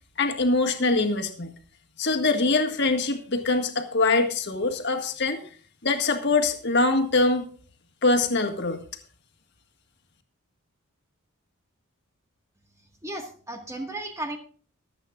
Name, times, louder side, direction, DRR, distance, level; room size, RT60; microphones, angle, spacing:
voice 1, 0.2-1.5 2.0-5.4 5.8-7.5 8.0-8.8, left 3 dB, 50° left, 5 dB, 1.6 m, -23 dB
voice 2, 12.8-14.4, right 1 dB, 15° right, 3 dB, 1.7 m, -35 dB
24.5 x 8.7 x 2.5 m, 0.41 s
head